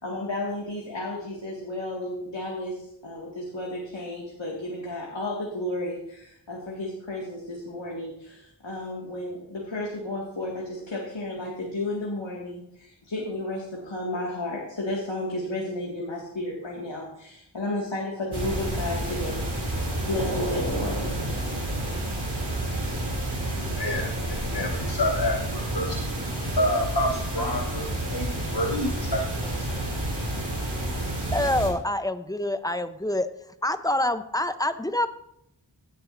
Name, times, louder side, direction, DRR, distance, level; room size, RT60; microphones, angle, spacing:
voice 1, 0.0-19.5 20.0-21.0, left 1 dB, 85° left, -3 dB, 2.2 m, -33 dB
sound 1, 18.3-31.7, right 1 dB, 60° right, 4.0 m, -29 dB
voice 2, 23.5-26.0 26.6-29.8, left 1 dB, 60° left, 1 dB, 1.3 m, -29 dB
voice 3, 31.3-33.3 33.6-35.1, left 1 dB, 10° left, 10 dB, 0.8 m, -26 dB
16.5 x 10.0 x 2.7 m, 0.75 s
wide cardioid pair, 40°, 44 cm